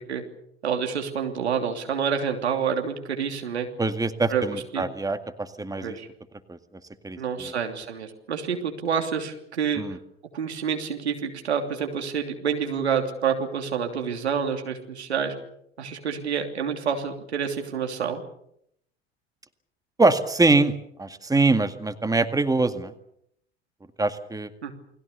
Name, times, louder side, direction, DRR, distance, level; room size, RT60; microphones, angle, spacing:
voice 1, 0.6-3.7 4.3-4.8 5.8-6.1 7.2-9.8 10.3-15.3 15.8-18.2 24.6-24.7, right 7 dB, 80° right, 4 dB, 3.1 m, -28 dB
voice 2, 3.8-6.0 6.5-6.6 7.0-7.5 9.8-10.0 20.0-20.7 21.0-22.9 24.0-24.5, right 3 dB, 10° right, 9 dB, 2.0 m, -23 dB
29.0 x 21.0 x 6.9 m, 0.74 s
figure-of-eight pair, 70°, 32 cm